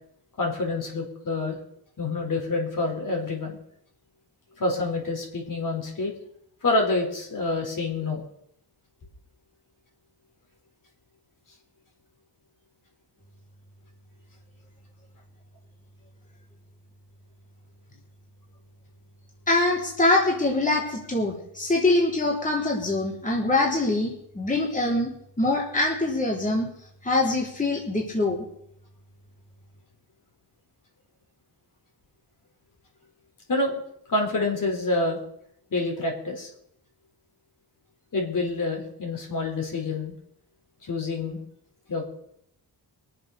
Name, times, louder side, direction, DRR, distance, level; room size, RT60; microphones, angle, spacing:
voice 1, 0.4-1.6 2.0-3.6 4.6-6.1 6.6-8.2 33.5-33.8 34.1-35.2 35.7-36.5 38.1-40.1 40.8-41.4 41.9-42.1, left 2 dB, 50° left, 1 dB, 4.6 m, -27 dB
voice 2, 19.5-25.1 25.4-26.7 27.0-28.4, left 2 dB, 20° left, -2 dB, 3.5 m, -24 dB
23.0 x 7.7 x 6.7 m, 0.73 s
wide cardioid pair, 115°, 40 cm